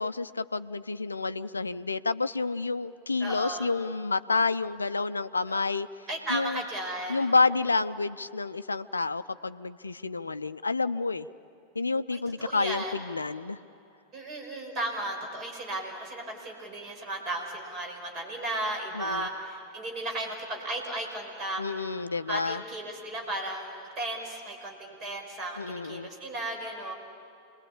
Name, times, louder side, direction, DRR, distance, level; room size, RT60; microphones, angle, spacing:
voice 1, 0.0-5.9 6.3-6.6 7.1-11.3 11.8-13.6 19.0-19.3 21.6-22.6 25.6-26.1, left 3 dB, 80° left, 14 dB, 0.5 m, -29 dB
voice 2, 3.2-3.7 5.5-5.6 6.1-7.3 12.1-13.0 14.1-21.6 22.3-26.9, right 1 dB, 30° right, 2 dB, 5.3 m, -35 dB
28.0 x 21.0 x 8.6 m, 2.7 s
figure-of-eight pair, 90°, 0 cm